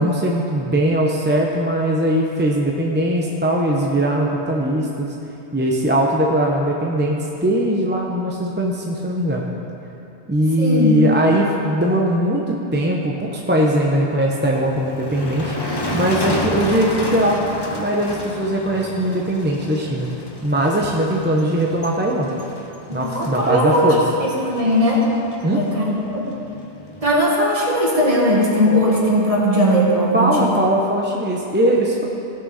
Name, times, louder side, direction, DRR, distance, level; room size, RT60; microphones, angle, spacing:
voice 1, 0.0-5.1 5.5-9.5 10.3-15.5 15.9-17.4 17.7-20.1 20.4-22.3 22.9-24.0 25.4-25.6 30.1-32.0, right 1 dB, 10° right, -2 dB, 0.6 m, -20 dB
voice 2, 10.6-11.0 22.9-23.9 24.2-25.0 25.5-26.2 27.0-30.5, equal, 30° right, -4 dB, 1.8 m, -18 dB
Motor vehicle (road), 14.5-27.2, left 1 dB, 25° left, 0.8 m, -31 dB
16.5 x 6.2 x 4.1 m, 2.9 s
omnidirectional pair, 1.2 m